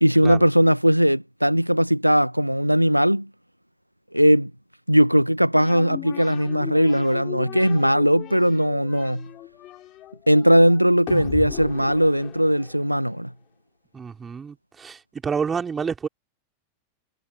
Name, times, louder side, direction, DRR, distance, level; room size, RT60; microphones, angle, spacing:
voice 1, 0.0-3.3 4.1-4.5 4.9-9.3 10.3-13.3, equal, 90° right, 1.1 m, -19 dB
sound 1, 5.6-13.1, left 15 dB, 35° left, 4.5 m, -37 dB
voice 2, 13.9-16.1, right 6 dB, 20° right, 4.5 m, -29 dB
figure-of-eight pair, 90°, 0 cm